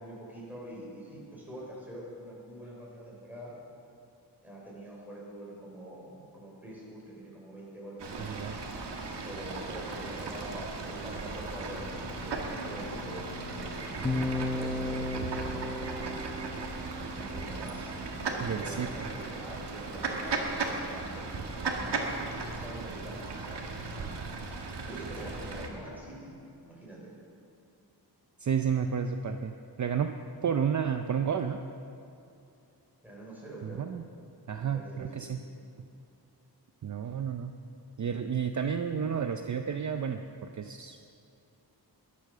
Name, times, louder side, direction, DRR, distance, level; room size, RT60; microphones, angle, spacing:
voice 1, 0.0-3.5 4.4-8.6 9.2-16.0 17.1-22.0 22.5-23.2 23.5-24.1 24.8-26.3 26.6-27.1 33.0-33.8 34.6-35.3, right 1 dB, 5° right, -5 dB, 4.9 m, -45 dB
Fowl / Bird, 8.0-25.7, right 3 dB, 85° right, 1.9 m, -37 dB
voice 2, 8.2-8.6 18.4-18.9 28.4-30.1 30.4-31.6 33.6-34.0 34.5-35.4 35.8-35.9 36.8-37.5 38.0-40.2 40.5-41.0, right 7 dB, 45° right, 6 dB, 0.6 m, -31 dB
Bowed string instrument, 11.5-15.0, left 6 dB, 30° left, 1.3 m, -48 dB
sound 1, 14.0-18.1, left 2 dB, 15° left, 0.7 m, -35 dB
22.0 x 8.5 x 6.6 m, 2.6 s
wide cardioid pair, 165°, 40 cm